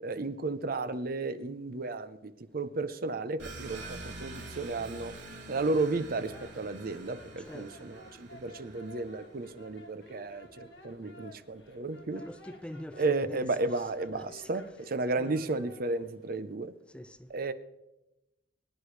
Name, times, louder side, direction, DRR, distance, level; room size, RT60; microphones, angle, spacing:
voice 1, 0.0-5.1 5.5-12.2 13.0-16.7 17.3-17.5, right 3 dB, 55° right, 0.7 m, -33 dB
sound 1, 3.4-9.7, right 2 dB, 70° right, 3.3 m, -46 dB
sound 2, 6.1-16.4, left 1 dB, 90° left, 1.6 m, -54 dB
voice 2, 12.1-13.5 14.1-14.5 15.2-15.3 16.9-17.3, left 1 dB, 5° left, 0.4 m, -44 dB
22.5 x 10.0 x 3.3 m
head